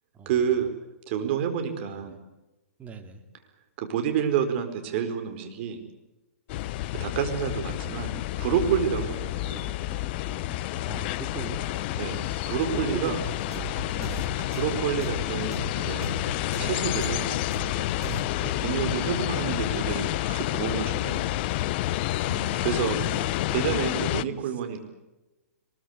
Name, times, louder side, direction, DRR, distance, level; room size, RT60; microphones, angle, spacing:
voice 1, 0.2-0.7 1.1-2.2 3.8-5.8 6.9-9.7 12.0-13.2 14.4-16.1 16.6-17.3 18.4-21.4 22.6-23.0 23.5-24.8, right 8 dB, 45° right, 7 dB, 4.6 m, -29 dB
voice 2, 2.8-3.2 9.0-9.2 10.8-11.6 12.2-12.5 12.7-13.6 13.9-14.3 18.0-18.3 22.2-23.3 24.4-24.6, right 6 dB, 15° right, 6 dB, 2.4 m, -40 dB
sound 1, 6.5-24.2, left 16 dB, 45° left, 0.7 m, -29 dB
sound 2, 7.5-16.8, left 8 dB, 15° left, 1.5 m, -44 dB
sound 3, 13.2-18.2, right 7 dB, 85° right, 4.0 m, -39 dB
23.0 x 21.5 x 8.1 m, 1.1 s
hypercardioid pair, 130°, 8 cm